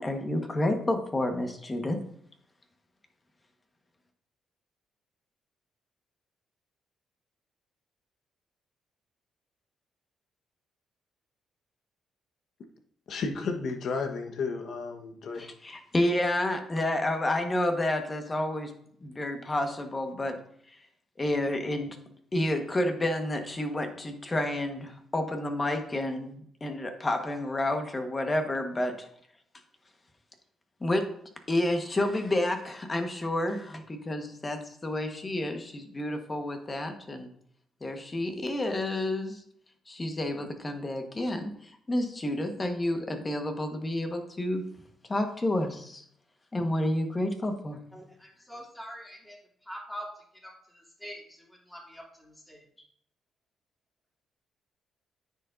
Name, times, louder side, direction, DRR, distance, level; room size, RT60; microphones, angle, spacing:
voice 1, 0.0-2.0 15.4-18.7 19.0-20.4 21.2-22.0 22.3-29.1 30.8-31.1 31.5-37.3 37.8-39.4 39.9-44.6 45.1-46.0 46.5-47.8, left 1 dB, 25° left, 1.4 m, -30 dB
voice 2, 13.1-15.5, left 4 dB, 65° left, 1.2 m, -33 dB
voice 3, 48.5-49.3 49.7-50.0 51.0-51.2 51.7-52.0 52.5-52.6, equal, 5° left, 2.8 m, -41 dB
9.6 x 7.0 x 2.7 m
cardioid pair, 90°, 0 cm